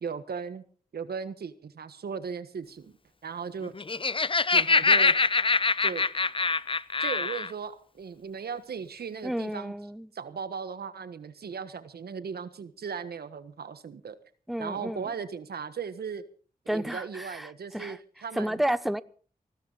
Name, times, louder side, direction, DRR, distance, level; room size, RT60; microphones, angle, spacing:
voice 1, 0.0-0.6 0.9-2.9 3.2-3.7 4.5-5.2 5.8-6.0 7.0-9.7 10.1-14.2 14.6-16.2 16.6-18.6, right 6 dB, 85° right, 1.4 m, -37 dB
Laughter, 3.7-7.5, left 4 dB, 35° left, 0.7 m, -24 dB
voice 2, 9.2-10.1 14.5-15.1 16.7-18.0 18.3-19.0, right 1 dB, ahead, 0.8 m, -31 dB
20.0 x 16.5 x 4.1 m
cardioid pair, 60°, 16 cm